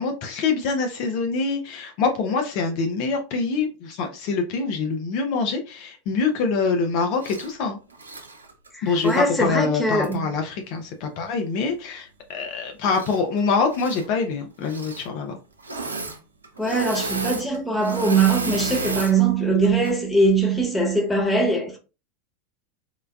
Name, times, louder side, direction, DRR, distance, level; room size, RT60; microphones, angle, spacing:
voice 1, 0.0-7.8 8.8-15.4, left 4 dB, 55° left, 0.5 m, -25 dB
Engine / Mechanisms, 7.2-7.5 7.9-9.3 10.0-10.1 12.8-13.4 13.7-14.1 14.6-15.1 15.6-16.2 16.4-19.1 19.6-19.9, right 2 dB, 90° right, 0.5 m, -32 dB
voice 2, 8.8-10.3 16.6-21.8, right 3 dB, 10° left, 1.1 m, -21 dB
3.8 x 2.2 x 2.3 m
hypercardioid pair, 90°, 0 cm